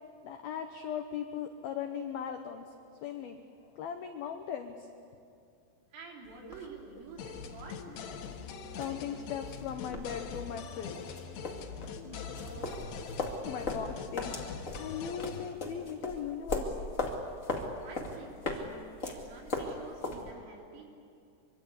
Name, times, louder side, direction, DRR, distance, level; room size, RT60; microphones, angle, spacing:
voice 1, 0.2-2.7 3.0-3.4 3.7-4.9 8.8-11.2 11.8-12.0 13.5-14.4 14.8-16.8, left 8 dB, 85° left, 6 dB, 2.1 m, -38 dB
voice 2, 5.9-7.8 12.1-13.1 17.8-20.9, right 4 dB, 70° right, 0 dB, 6.1 m, -49 dB
sound 1, 6.2-20.3, left 2 dB, 50° left, 0.9 m, -39 dB
sound 2, 7.2-15.5, left 6 dB, 65° left, 3.2 m, -43 dB
24.5 x 24.5 x 8.4 m, 2.5 s
omnidirectional pair, 5.9 m